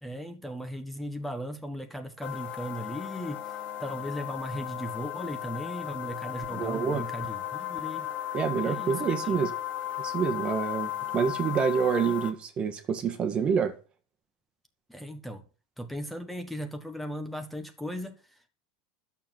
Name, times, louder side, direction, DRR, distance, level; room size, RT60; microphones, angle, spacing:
voice 1, 0.0-8.1 8.6-9.4 14.9-15.4 15.8-18.2, equal, 5° left, 1.4 m, -37 dB
sound 1, 2.2-12.3, left 12 dB, 40° left, 1.9 m, -35 dB
voice 2, 6.5-7.0 8.3-9.5 10.0-13.7, right 6 dB, 30° right, 1.6 m, -27 dB
11.5 x 7.2 x 6.0 m
supercardioid pair, 135°, 4 cm